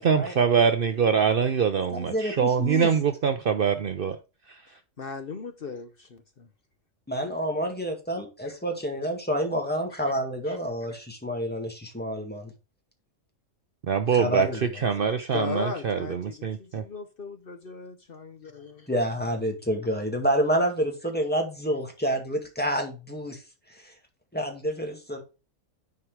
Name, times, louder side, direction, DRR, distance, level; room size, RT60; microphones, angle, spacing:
voice 1, 0.0-4.2 13.9-14.5 14.8-16.0 16.4-16.8, right 6 dB, 55° right, 0.7 m, -23 dB
voice 2, 1.9-2.9 7.1-12.5 14.1-14.9 18.9-23.4 23.7-23.9 24.3-25.2, equal, 10° left, 1.8 m, -28 dB
voice 3, 5.0-6.5 8.4-8.6 10.5-10.6 15.3-18.9, left 5 dB, 50° left, 1.0 m, -37 dB
9.8 x 4.7 x 4.6 m
omnidirectional pair, 1.3 m